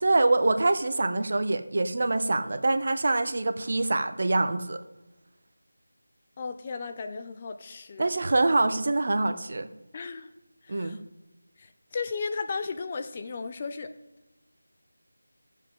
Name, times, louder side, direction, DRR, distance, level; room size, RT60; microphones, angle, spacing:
voice 1, 0.0-4.8 8.0-9.7 10.7-11.0, right 2 dB, 50° right, 9 dB, 0.7 m, -25 dB
voice 2, 6.4-8.1 9.9-10.3 10.6-11.0 11.6-13.9, left 4 dB, 25° left, 8 dB, 0.5 m, -35 dB
14.0 x 7.3 x 3.6 m, 1.0 s
figure-of-eight pair, 165°, 0 cm